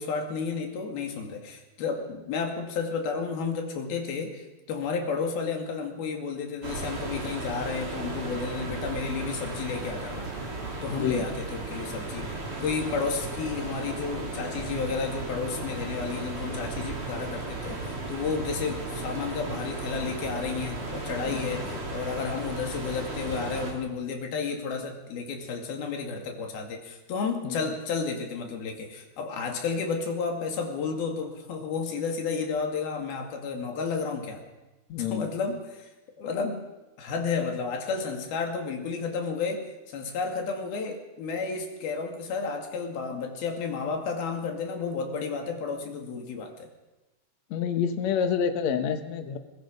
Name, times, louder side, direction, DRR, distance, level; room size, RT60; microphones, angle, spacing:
voice 1, 0.0-10.3 10.8-12.4 12.6-34.4 35.0-35.9 36.2-36.6 37.0-46.7, left 5 dB, 80° left, 2 dB, 4.3 m, -32 dB
sound 1, 6.6-23.7, right 2 dB, 40° right, 3.7 m, -35 dB
voice 2, 10.9-11.2 21.3-21.8 27.4-27.6 34.9-35.3 47.5-49.4, left 7 dB, 60° left, 8 dB, 2.3 m, -28 dB
22.5 x 21.5 x 5.4 m, 1.1 s
omnidirectional pair, 4.3 m